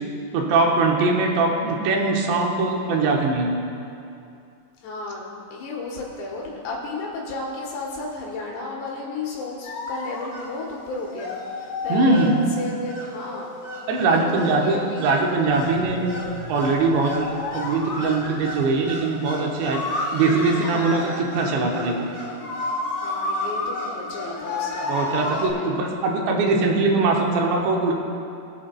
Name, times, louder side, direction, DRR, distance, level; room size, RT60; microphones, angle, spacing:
voice 1, 0.3-3.6 11.9-12.3 13.9-16.2 16.5-19.8 20.1-22.0 24.9-27.9, right 3 dB, 90° right, 0 dB, 3.3 m, -21 dB
voice 2, 4.8-12.3 12.6-13.5 14.0-15.1 23.0-25.8, left 3 dB, 80° left, -2 dB, 3.4 m, -33 dB
sound 1, 9.6-25.5, left 2 dB, 55° left, 2.8 m, -32 dB
sound 2, 15.5-19.2, right 3 dB, 50° right, 3.5 m, -41 dB
22.5 x 8.4 x 2.3 m, 2.6 s
omnidirectional pair, 4.9 m